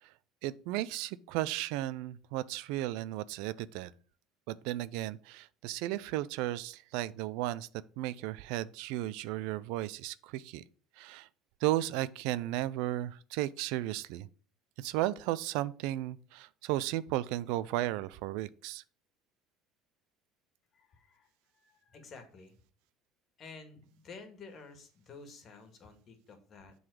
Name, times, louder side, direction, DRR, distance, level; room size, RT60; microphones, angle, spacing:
voice 1, 0.4-3.9 4.5-7.7 8.0-10.6 11.0-11.3 11.6-14.3 14.8-18.8, right 15 dB, 75° right, 0.4 m, -34 dB
voice 2, 20.7-22.6 23.4-26.7, left 4 dB, 40° left, 2.0 m, -52 dB
7.5 x 4.0 x 6.3 m
supercardioid pair, 120°, 0 cm